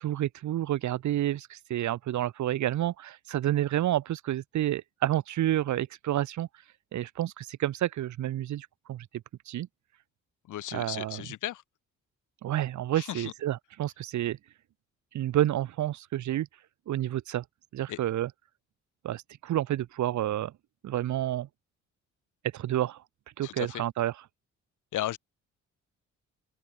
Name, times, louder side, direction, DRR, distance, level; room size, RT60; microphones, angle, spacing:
voice 1, 0.0-9.1 9.4-9.7 10.7-11.2 12.4-14.4 15.1-17.4 17.7-18.3 19.0-20.5 20.8-21.5 22.4-23.0 23.4-24.2, right 13 dB, 70° right, 1.6 m, -30 dB
voice 2, 10.5-11.6 12.9-13.3 17.9-18.0 23.4-23.8 24.9-25.2, left 13 dB, 80° left, 4.6 m, -35 dB
open air
cardioid pair, 90°, 30 cm